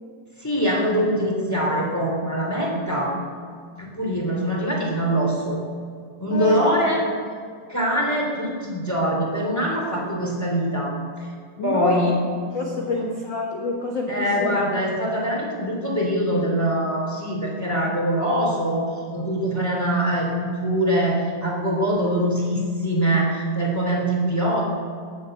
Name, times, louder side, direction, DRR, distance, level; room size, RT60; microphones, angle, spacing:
voice 1, 0.4-3.1 3.8-5.6 6.2-7.0 7.7-11.3 11.6-12.1 12.9-13.0 14.1-18.8 19.1-24.6, equal, 5° left, -2 dB, 2.7 m, -23 dB
voice 2, 6.3-6.9 11.6-12.1 12.5-14.6, left 3 dB, 50° left, 0 dB, 1.4 m, -27 dB
20.5 x 7.8 x 7.9 m, 2.1 s
omnidirectional pair, 3.8 m